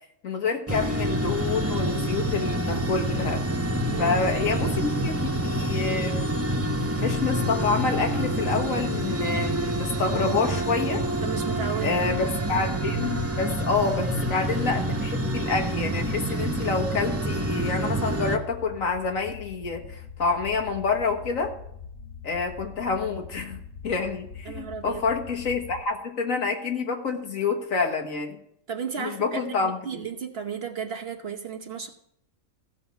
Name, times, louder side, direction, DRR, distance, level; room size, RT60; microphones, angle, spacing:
voice 1, 0.2-3.4 4.0-6.4 7.0-11.1 11.8-21.5 22.2-28.4 29.0-30.0, left 4 dB, 70° left, 4 dB, 1.8 m, -28 dB
sound 1, 0.7-18.4, right 1 dB, 15° right, 0.7 m, -27 dB
voice 2, 11.2-12.3 24.4-25.0 28.7-31.9, right 6 dB, 50° right, 4 dB, 1.1 m, -34 dB
sound 2, 15.5-25.8, left 6 dB, 85° left, 2.8 m, -42 dB
15.0 x 5.6 x 7.0 m, 0.74 s
omnidirectional pair, 1.5 m